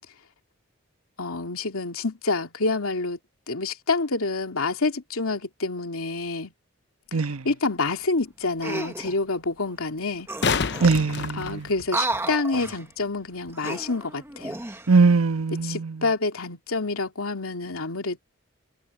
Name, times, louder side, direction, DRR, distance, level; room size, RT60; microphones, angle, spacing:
voice 1, 1.2-3.2 3.5-6.5 7.2-10.3 11.3-14.6 15.6-18.2, left 3 dB, 85° left, 2.6 m, -28 dB
voice 2, 7.1-7.5 10.8-11.7 14.9-16.0, right 4 dB, 90° right, 1.2 m, -21 dB
sound 1, 7.2-7.3 10.0-12.2 15.1-15.2, left 5 dB, 55° left, 0.8 m, -28 dB
sound 2, 8.6-9.2 10.0-10.1 10.3-11.1 11.8-12.8 13.5-14.9 15.4-15.6, right 2 dB, 10° right, 1.1 m, -32 dB
head